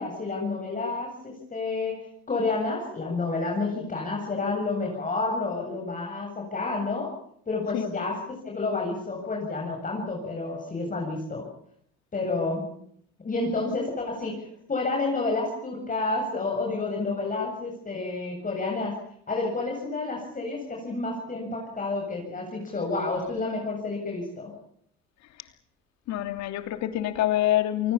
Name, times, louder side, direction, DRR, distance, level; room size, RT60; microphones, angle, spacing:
voice 1, 0.0-2.0 2.3-7.1 7.5-11.4 12.1-12.6 13.2-19.0 19.3-24.5, left 3 dB, 25° left, 0 dB, 7.9 m, -30 dB
voice 2, 26.1-27.9, left 13 dB, 65° left, 8 dB, 3.1 m, -26 dB
28.5 x 20.5 x 7.3 m, 0.68 s
supercardioid pair, 90°, 29 cm